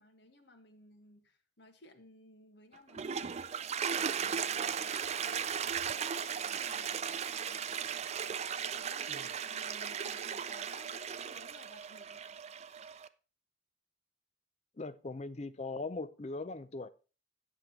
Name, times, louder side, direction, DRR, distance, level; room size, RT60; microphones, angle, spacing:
voice 1, 0.0-3.2 3.9-7.7 8.6-12.4, left 1 dB, 60° left, 1.5 m, -58 dB
Toilet flush, 2.7-13.1, right 7 dB, 35° right, 0.4 m, -37 dB
voice 2, 14.8-16.9, left 3 dB, 35° left, 0.5 m, -40 dB
8.0 x 7.9 x 4.2 m
head